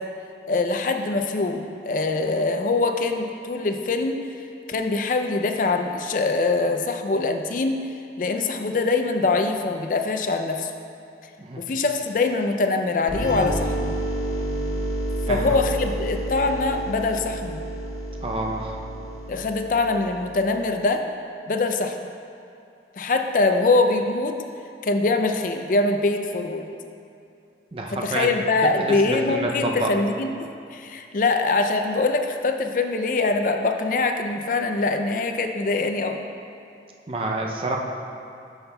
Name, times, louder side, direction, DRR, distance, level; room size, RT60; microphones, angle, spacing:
voice 1, 0.5-4.2 4.7-7.8 8.2-10.7 11.6-13.9 15.3-17.6 19.3-21.0 21.5-22.0 23.0-24.4 24.8-26.7 28.0-36.2, left 3 dB, 45° left, 5 dB, 0.4 m, -23 dB
sound 1, 13.1-20.7, right 1 dB, 75° left, 1.2 m, -30 dB
voice 2, 18.2-18.8 27.7-28.3 28.8-29.9 37.1-37.8, right 2 dB, 30° right, 1 dB, 0.5 m, -28 dB
12.0 x 5.7 x 2.2 m, 2.6 s
head